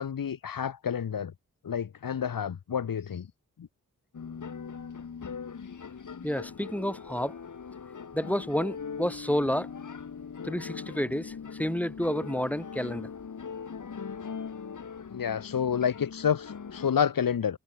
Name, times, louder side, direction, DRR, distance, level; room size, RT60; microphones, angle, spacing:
voice 1, 0.0-1.3 1.6-3.3 3.6-3.7 15.1-17.6, left 8 dB, 90° left, 1.9 m, -29 dB
sound 1, 4.1-16.9, left 6 dB, 65° left, 3.3 m, -40 dB
voice 2, 6.2-7.4 8.1-9.7 10.4-13.1, equal, 5° left, 2.3 m, -30 dB
open air
wide cardioid pair, 125°, 33 cm